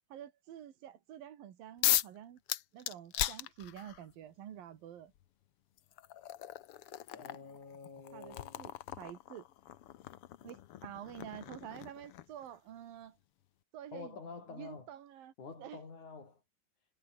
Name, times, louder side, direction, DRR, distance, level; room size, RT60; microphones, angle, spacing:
voice 1, 0.1-2.4 2.7-5.1 8.1-9.5 10.4-13.2 13.7-14.2 14.5-15.3 15.6-15.8, right 10 dB, 85° right, 3.7 m, -48 dB
sound 1, 1.8-2.2 2.5-4.0 5.2-5.3 5.8-12.4, left 13 dB, 80° left, 1.2 m, -37 dB
voice 2, 7.1-8.6 13.9-14.9 15.4-16.4, left 4 dB, 60° left, 6.5 m, -48 dB
omnidirectional pair, 4.0 m